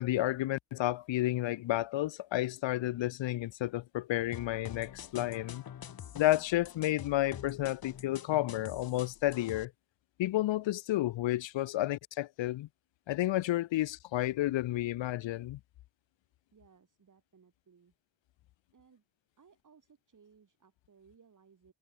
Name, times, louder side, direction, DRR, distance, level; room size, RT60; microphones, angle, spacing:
voice 1, 0.0-5.6 6.1-9.7 10.2-12.7 13.1-15.6, left 15 dB, 75° left, 0.6 m, -31 dB
sound 1, 4.3-9.7, left 9 dB, 50° left, 1.3 m, -46 dB
voice 2, 16.5-17.9 18.7-19.1 19.4-21.7, right 6 dB, 40° right, 5.8 m, -63 dB
wide cardioid pair, 145°, 46 cm